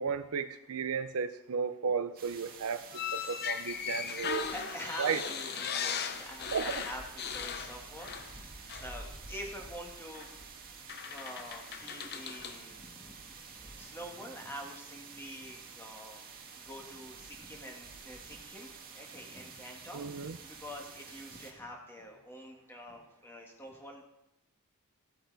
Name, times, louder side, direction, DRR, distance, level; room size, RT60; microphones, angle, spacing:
voice 1, 0.0-2.9 3.1-4.5 5.0-5.3 6.5-6.7 19.9-20.4, right 6 dB, 70° right, 12 dB, 0.5 m, -34 dB
sound 1, 2.2-21.5, right 5 dB, 45° right, 1.7 m, -49 dB
Creaky Doors, 2.9-8.4 8.7-8.9 10.1-10.3 10.9-12.6, left 7 dB, 50° left, 0.7 m, -38 dB
voice 2, 4.5-10.3 11.1-16.2 16.5-18.7 18.9-24.0, equal, 10° left, 0 dB, 1.8 m, -46 dB
14.5 x 8.5 x 4.0 m, 0.89 s
head